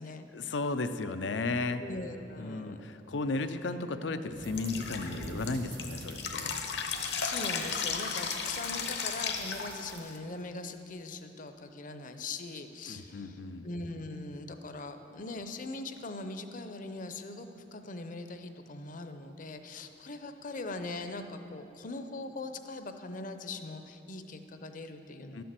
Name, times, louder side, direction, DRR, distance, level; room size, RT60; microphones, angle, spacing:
voice 1, 0.3-1.8 2.4-6.5 12.9-13.7 25.3-25.4, left 3 dB, 85° left, 9 dB, 0.6 m, -34 dB
voice 2, 1.8-2.8 7.0-25.4, left 2 dB, 50° left, 8 dB, 0.7 m, -41 dB
sound 1, 4.4-10.0, right 2 dB, 60° right, 1.1 m, -47 dB
Drip, 4.6-10.2, left 6 dB, 70° left, 1.0 m, -35 dB
12.0 x 6.9 x 7.6 m, 2.9 s
head